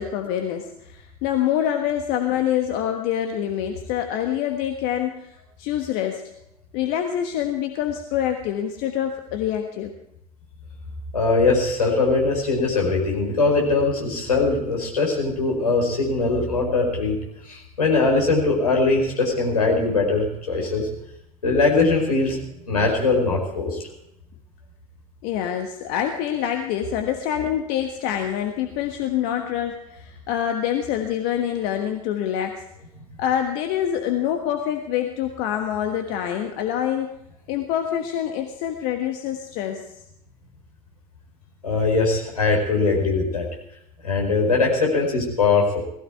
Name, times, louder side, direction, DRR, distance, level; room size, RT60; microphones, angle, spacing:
voice 1, 0.0-5.3 5.6-6.2 6.7-9.9 25.2-32.6 33.2-37.1 37.5-39.8, left 10 dB, 55° left, 5 dB, 1.4 m, -26 dB
voice 2, 11.1-17.2 17.5-20.9 21.4-22.4 22.7-23.8 41.6-43.4 44.0-45.8, left 3 dB, 80° left, 0 dB, 4.9 m, -21 dB
18.5 x 16.0 x 4.6 m, 0.80 s
figure-of-eight pair, 75°, 19 cm